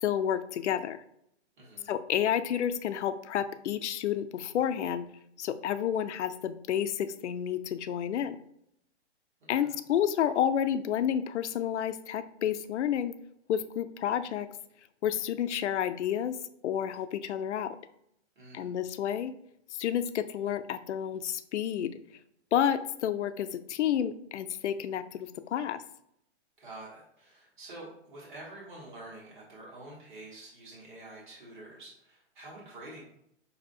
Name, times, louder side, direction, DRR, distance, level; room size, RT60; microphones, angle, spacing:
voice 1, 0.0-1.0 1.9-5.1 5.4-8.4 9.5-13.1 13.5-14.5 15.0-16.4 16.6-17.8 18.5-19.3 19.7-21.9 22.5-25.8, left 9 dB, 80° left, 11 dB, 0.5 m, -30 dB
voice 2, 1.6-1.9 9.5-9.7 18.3-18.7 26.6-33.0, right 2 dB, 45° right, -5 dB, 1.4 m, -47 dB
5.1 x 2.7 x 2.6 m, 0.73 s
hypercardioid pair, 180°, 35 cm